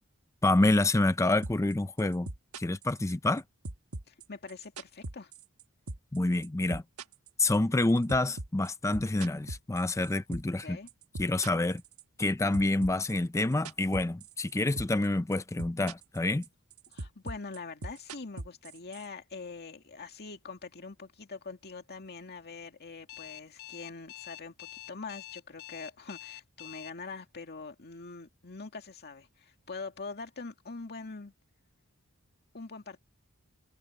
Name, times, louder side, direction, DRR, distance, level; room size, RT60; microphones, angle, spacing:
voice 1, 0.4-2.3 2.6-3.4 6.1-6.8 7.4-10.8 11.2-11.8 12.2-16.4, left 2 dB, 15° left, 0.5 m, -27 dB
sound 1, 1.4-1.7 2.0-3.4 3.6-5.6 5.9-6.2 6.4-10.6 10.9-12.3 12.5-14.5 14.8-15.1 15.3-16.2 16.4-19.1, right 2 dB, 80° right, 1.3 m, -40 dB
voice 2, 4.1-5.3 10.6-10.9 16.9-31.3 32.5-33.0, left 4 dB, 45° left, 2.2 m, -44 dB
Alarm, 23.1-26.9, left 15 dB, 65° left, 4.0 m, -45 dB
head